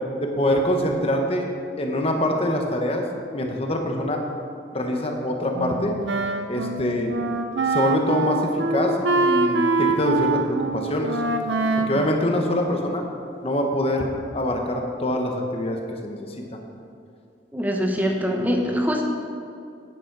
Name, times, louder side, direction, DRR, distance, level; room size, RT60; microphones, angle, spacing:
voice 1, 0.2-1.5 1.8-3.0 3.3-4.2 4.7-5.9 6.5-7.1 7.7-11.2 11.8-13.0 13.4-16.3, left 1 dB, 35° left, 2 dB, 1.1 m, -24 dB
Wind instrument woodwind instrument, 5.5-13.0, right 3 dB, 80° right, 0.7 m, -25 dB
voice 2, 17.5-19.0, equal, 10° right, 2 dB, 1.0 m, -23 dB
10.5 x 9.2 x 4.7 m, 2.5 s
head